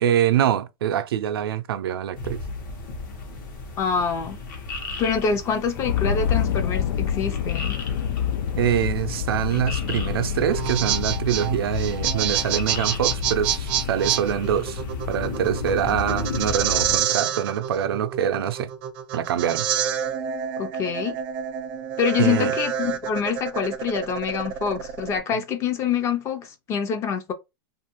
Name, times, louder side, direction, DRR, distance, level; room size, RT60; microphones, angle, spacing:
voice 1, 0.0-2.4 8.6-18.7 19.1-19.7 22.2-22.5, right 10 dB, 90° right, 0.4 m, -24 dB
sound 1, 2.1-17.0, left 3 dB, 55° left, 0.9 m, -34 dB
voice 2, 3.8-4.4 5.0-7.8 20.6-21.2 22.0-27.3, left 6 dB, 25° left, 0.4 m, -26 dB
sound 2, 5.7-15.3, left 8 dB, 90° left, 0.4 m, -28 dB
sound 3, 10.4-25.2, right 10 dB, 35° right, 0.4 m, -28 dB
2.6 x 2.4 x 2.9 m
supercardioid pair, 155°, 12 cm